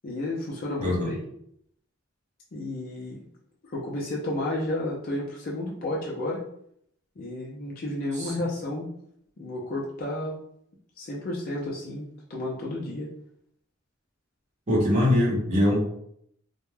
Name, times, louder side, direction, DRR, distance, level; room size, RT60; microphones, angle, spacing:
voice 1, 0.0-1.2 2.5-3.2 3.6-6.4 7.2-8.9 9.4-10.4 11.0-13.1, left 1 dB, 45° left, -3 dB, 0.4 m, -32 dB
voice 2, 0.8-1.1 8.2-8.3 14.7-15.8, left 1 dB, 35° right, -5 dB, 0.8 m, -22 dB
2.2 x 2.1 x 3.1 m, 0.70 s
head